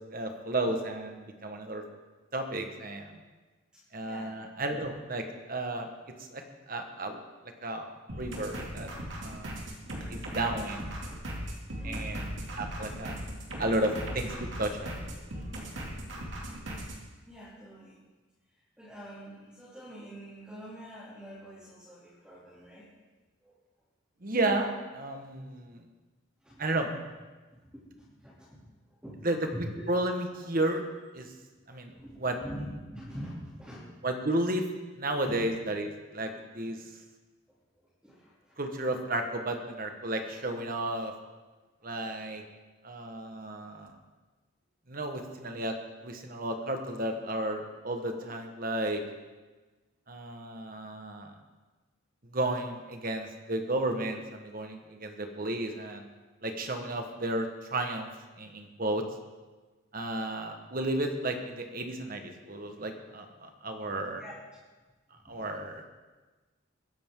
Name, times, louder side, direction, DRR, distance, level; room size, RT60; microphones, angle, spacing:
voice 1, 0.1-1.8 2.3-3.2 3.9-5.9 6.3-8.9 9.2-9.6 10.1-10.9 11.8-12.3 12.6-13.1 13.6-14.9 24.2-25.8 26.6-26.9 29.2-30.8 31.1-31.3 31.7-31.9 32.2-32.4 34.0-34.7 35.0-36.8 38.6-41.1 41.8-42.4 42.8-43.9 44.9-45.7 46.0-49.0 50.1-51.4 52.3-56.0 56.4-58.1 58.4-59.0 59.9-64.2 65.3-65.8, right 1 dB, 45° right, 5 dB, 1.4 m, -33 dB
voice 2, 3.7-4.4 11.8-12.2 17.3-18.0 18.8-22.9 23.4-23.5 26.4-26.6 27.5-29.2 29.5-29.8 31.9-34.1 35.2-35.4 38.0-38.6 41.8-41.9 48.1-48.3 64.2-64.3 65.2-65.4, equal, 5° right, -10 dB, 2.9 m, -45 dB
sound 1, 8.1-17.0, right 1 dB, 65° right, 2.7 m, -38 dB
21.5 x 10.5 x 3.8 m, 1.3 s
head